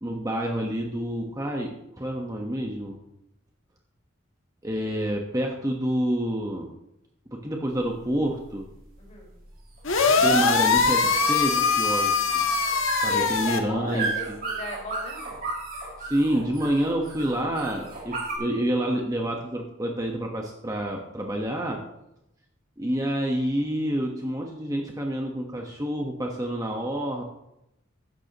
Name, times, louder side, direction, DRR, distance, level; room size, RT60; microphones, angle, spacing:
voice 1, 0.0-3.0 4.6-6.7 7.3-8.6 10.2-12.5 13.0-14.4 16.0-21.8 22.8-27.2, right 1 dB, 15° right, 0 dB, 1.2 m, -28 dB
sound 1, 7.7-18.4, right 3 dB, 45° right, 5.3 m, -35 dB
voice 2, 9.0-9.3 13.1-15.4, equal, 35° left, -2 dB, 4.5 m, -36 dB
sound 2, 9.8-13.6, left 4 dB, 75° left, 1.4 m, -22 dB
16.0 x 12.0 x 3.0 m, 0.85 s
head